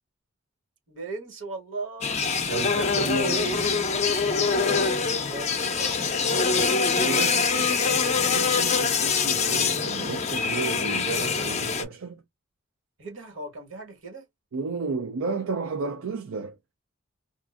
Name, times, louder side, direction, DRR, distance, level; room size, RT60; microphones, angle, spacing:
voice 1, 0.9-2.7 5.0-6.7 13.0-14.2, right 3 dB, 65° right, 1.4 m, -39 dB
sound 1, 2.0-11.8, left 5 dB, 35° left, 0.5 m, -24 dB
voice 2, 2.5-3.7 7.0-12.2 14.5-16.6, right 4 dB, 85° right, 0.4 m, -32 dB
2.5 x 2.4 x 2.3 m
head